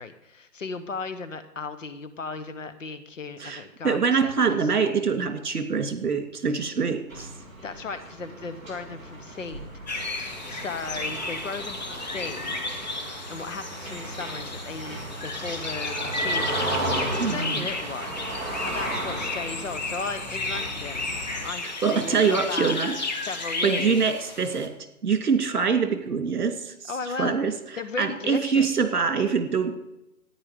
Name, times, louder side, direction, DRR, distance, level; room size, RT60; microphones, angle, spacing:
voice 1, 0.0-4.6 7.6-9.7 10.5-12.9 13.3-16.7 17.0-18.2 18.4-21.6 21.9-22.7 23.2-24.0 26.9-27.4 27.8-28.7, left 4 dB, 50° left, 11 dB, 1.3 m, -36 dB
voice 2, 3.4-7.3 17.2-17.7 21.6-22.9 23.6-24.7 25.0-26.9 27.2-27.5 28.0-29.7, right 5 dB, 65° right, 8 dB, 2.7 m, -24 dB
sound 1, 7.1-21.5, right 1 dB, ahead, 1.7 m, -35 dB
sound 2, 9.9-24.7, left 3 dB, 25° left, 1.2 m, -33 dB
13.5 x 10.0 x 5.1 m, 0.88 s
hypercardioid pair, 175°, 48 cm